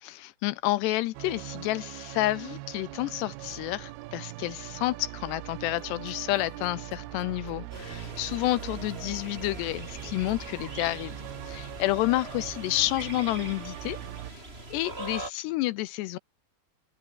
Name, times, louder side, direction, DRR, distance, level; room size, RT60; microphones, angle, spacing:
voice 1, 0.0-14.0 14.3-14.4 14.7-16.2, left 17 dB, 80° left, 2.5 m, -30 dB
sound 1, 1.1-14.3, right 19 dB, 85° right, 2.2 m, -42 dB
sound 2, 5.7-11.0, right 4 dB, 30° right, 4.7 m, -53 dB
sound 3, 7.7-15.3, right 2 dB, 15° right, 3.9 m, -42 dB
open air
omnidirectional pair, 5.4 m